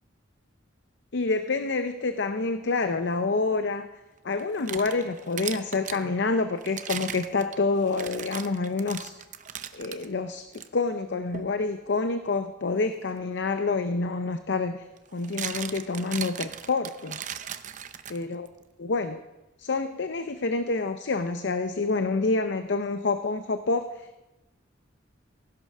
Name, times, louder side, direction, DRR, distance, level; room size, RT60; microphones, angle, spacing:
voice 1, 1.1-3.9 4.2-9.1 9.7-14.8 15.1-17.2 18.1-18.5 18.8-19.2 19.6-24.2, left 3 dB, 60° left, 9 dB, 0.6 m, -27 dB
sound 1, 4.4-6.0 6.6-10.1 10.5-10.7 11.3-11.6 13.7-13.8 15.0-18.5, right 9 dB, 40° right, 0.6 m, -38 dB
16.0 x 11.0 x 5.5 m, 1.0 s
head